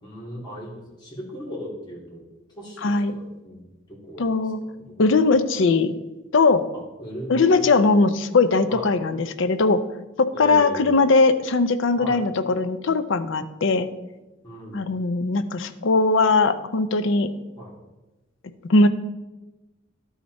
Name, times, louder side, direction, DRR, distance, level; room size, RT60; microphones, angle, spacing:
voice 1, 0.0-2.2 2.5-4.5 4.8-4.9 6.7-7.5 7.9-8.0 8.7-8.9 10.3-11.0 12.0-12.3 14.4-14.9 17.6-17.8, equal, 20° left, -5 dB, 2.7 m, -37 dB
voice 2, 2.8-3.1 4.2-4.6 5.0-5.9 6.3-6.6 7.3-9.8 10.2-13.9 14.7-17.3 18.7-18.9, left 3 dB, 65° left, 11 dB, 0.6 m, -20 dB
12.0 x 5.0 x 4.0 m, 1.1 s
head